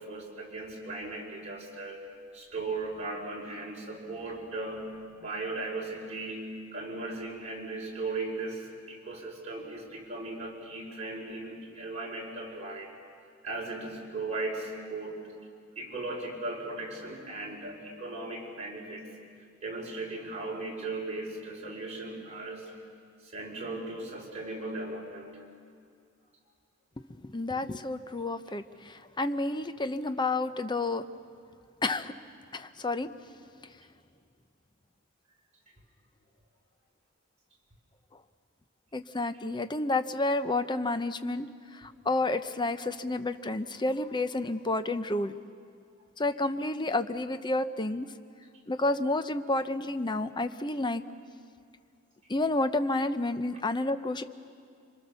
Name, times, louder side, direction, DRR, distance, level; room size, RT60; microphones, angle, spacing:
voice 1, 0.0-2.0 2.3-13.0 13.4-15.3 15.7-19.1 19.6-22.7 23.2-25.4, right 2 dB, 35° right, -2 dB, 5.1 m, -37 dB
voice 2, 27.2-31.0 31.8-32.1 32.5-33.1 38.9-41.5 41.7-45.3 46.2-48.1 48.7-51.0 52.3-54.2, left 2 dB, 20° left, 10 dB, 0.8 m, -30 dB
26.5 x 24.5 x 6.9 m, 2.3 s
head